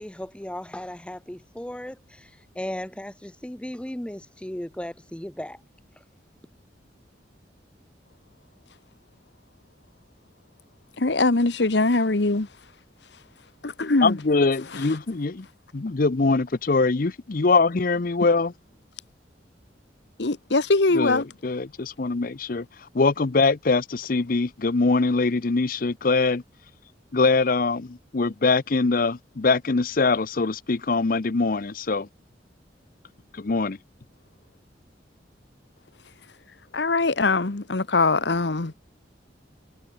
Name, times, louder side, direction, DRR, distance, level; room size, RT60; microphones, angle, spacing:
voice 1, 0.0-5.6 6.0-6.1, left 1 dB, 5° left, 0.6 m, -36 dB
voice 2, 11.0-12.5 13.1-13.2 13.6-14.2 20.2-21.2 36.7-38.7, left 3 dB, 70° left, 1.2 m, -22 dB
voice 3, 14.0-15.5 15.7-18.5 20.9-26.4 27.1-32.1 33.3-33.8, left 3 dB, 50° left, 0.7 m, -23 dB
head